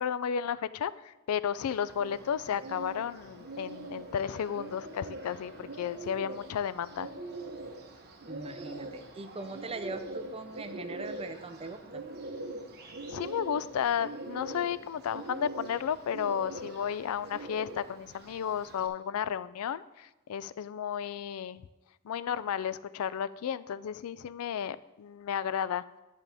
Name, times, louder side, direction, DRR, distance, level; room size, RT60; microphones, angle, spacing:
voice 1, 0.0-7.1 13.1-21.6 22.0-25.8, left 8 dB, 90° left, 17 dB, 0.4 m, -33 dB
Bird, 1.6-18.9, right 2 dB, 50° right, 1.1 m, -43 dB
voice 2, 8.3-12.0, right 3 dB, 25° right, 8 dB, 0.6 m, -41 dB
11.5 x 7.4 x 3.4 m, 1.0 s
head